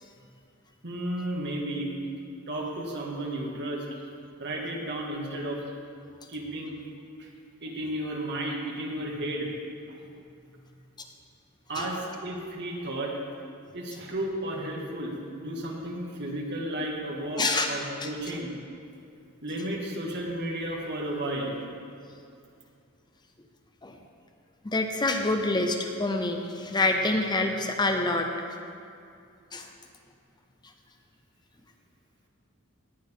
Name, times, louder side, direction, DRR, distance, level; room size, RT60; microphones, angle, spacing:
voice 1, 0.8-1.9 2.5-3.9 4.4-5.6 6.3-6.8 7.2-7.3 7.6-9.5 9.9-10.0 11.7-13.1 13.7-18.5 19.4-21.6, right 1 dB, 55° right, -2 dB, 2.0 m, -33 dB
voice 2, 17.4-17.7 18.0-18.1 23.8-23.9 24.6-28.5 29.5-29.7, left 2 dB, 20° left, 4 dB, 0.7 m, -26 dB
18.0 x 9.1 x 3.8 m, 2.5 s
head